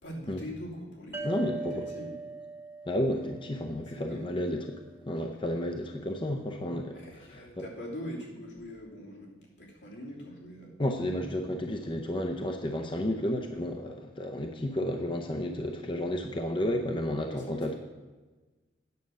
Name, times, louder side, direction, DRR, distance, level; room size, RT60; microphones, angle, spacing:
voice 1, 0.0-2.1 3.8-4.4 6.9-9.3 9.6-10.7 17.2-17.8, equal, 85° left, -4 dB, 3.1 m, -43 dB
sound 1, 1.1-4.6, right 3 dB, 15° right, 0.9 m, -40 dB
voice 2, 1.2-1.8 2.9-4.6 5.1-7.0 10.8-17.7, left 1 dB, 30° left, 3 dB, 0.7 m, -31 dB
9.4 x 6.6 x 6.3 m, 1.3 s
head